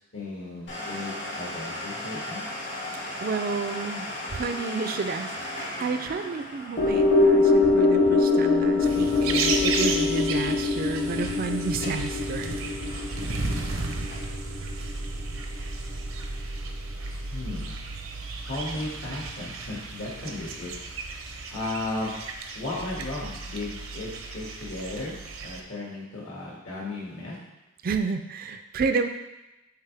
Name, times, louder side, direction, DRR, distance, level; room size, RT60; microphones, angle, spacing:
voice 1, 0.1-2.4 17.3-17.8 18.5-20.8 21.5-22.2 22.5-24.1 24.3-25.1 25.4-27.3, left 2 dB, 75° left, -5 dB, 2.0 m, -35 dB
Domestic sounds home sounds, 0.7-10.1 10.4-10.5 11.0-11.4 11.7-12.1 12.4-14.5 15.0-15.1 15.7-15.8, left 1 dB, 60° left, 2.0 m, -37 dB
voice 2, 3.2-12.5 27.8-29.1, right 4 dB, 45° right, 8 dB, 0.3 m, -30 dB
sound 1, 6.8-15.2 15.5-15.6, left 3 dB, 40° left, 0.9 m, -23 dB
sound 2, 8.8-25.6, right 3 dB, 75° right, 0.7 m, -34 dB
8.3 x 3.4 x 3.4 m, 0.98 s
head